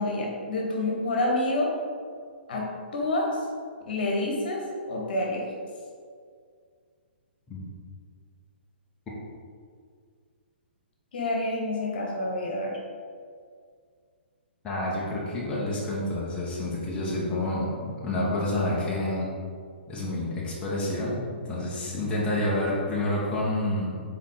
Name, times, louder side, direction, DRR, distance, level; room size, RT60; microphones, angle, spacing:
voice 1, 0.0-1.7 2.5-2.7 2.9-3.3 3.9-4.6 4.9-5.4 11.1-12.8, left 2 dB, 55° left, -2 dB, 1.4 m, -28 dB
voice 2, 14.6-19.4 19.9-24.0, left 1 dB, 15° left, -7 dB, 1.2 m, -29 dB
5.6 x 4.4 x 4.1 m, 2.1 s
figure-of-eight pair, 125°, 6 cm